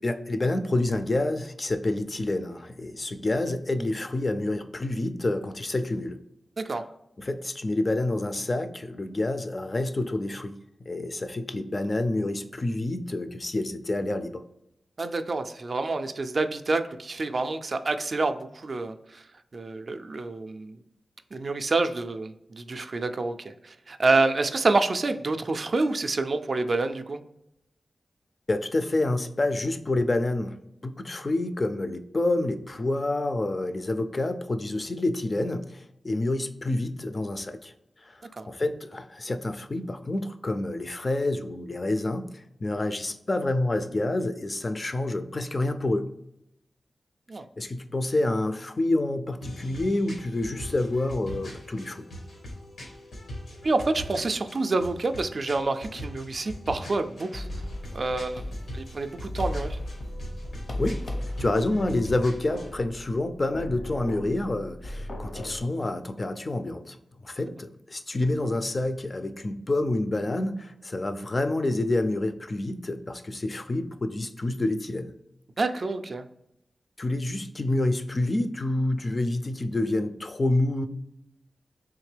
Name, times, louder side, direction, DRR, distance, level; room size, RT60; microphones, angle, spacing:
voice 1, 0.0-6.2 7.2-10.6 10.9-14.4 28.5-30.5 30.8-37.7 38.1-46.1 47.6-52.1 60.8-61.1 61.4-67.0 67.2-75.1 77.0-80.9, left 2 dB, 35° left, 9 dB, 0.3 m, -28 dB
voice 2, 15.0-19.2 19.5-20.8 21.3-27.2 38.4-38.5 47.3-47.4 53.6-57.6 57.9-58.4 58.7-59.8 75.6-76.2, right 3 dB, 55° right, 8 dB, 0.3 m, -27 dB
sound 1, 49.4-62.7, equal, 90° left, 1.1 m, -41 dB
sound 2, 57.3-65.6, left 1 dB, 75° left, 0.8 m, -36 dB
3.6 x 2.8 x 3.2 m, 0.83 s
wide cardioid pair, 75°, 0 cm